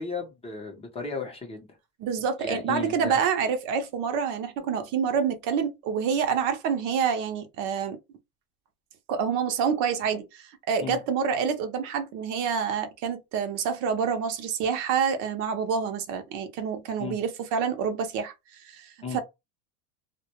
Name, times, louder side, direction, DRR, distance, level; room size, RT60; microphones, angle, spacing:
voice 1, 0.0-1.7 2.4-3.2 10.8-11.0 17.0-17.2 19.0-19.2, left 4 dB, 15° left, 0.5 m, -34 dB
voice 2, 2.0-8.0 9.1-18.3 18.6-19.2, right 6 dB, 50° right, 0.6 m, -27 dB
2.1 x 2.1 x 2.8 m
supercardioid pair, 145°, 39 cm